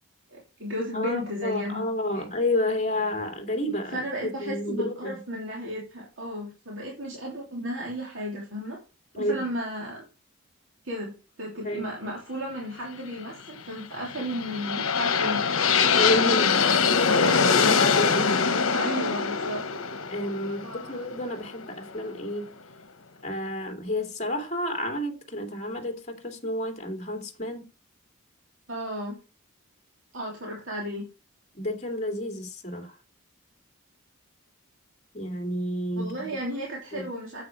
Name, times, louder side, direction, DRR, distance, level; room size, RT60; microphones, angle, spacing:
voice 1, 0.3-1.8 2.1-2.3 3.9-8.8 9.1-10.0 10.8-15.5 18.7-19.6 20.6-21.0 28.7-29.2 30.1-31.1 36.0-37.5, equal, 60° right, 3.1 m, -34 dB
voice 2, 0.9-5.1 9.2-9.4 11.6-11.8 15.9-18.9 20.1-22.5 23.2-27.6 31.5-32.9 35.1-36.4 36.9-37.0, left 1 dB, 30° left, 2.5 m, -30 dB
sound 1, 14.0-21.9, left 5 dB, 70° left, 1.2 m, -23 dB
9.4 x 8.1 x 4.6 m
head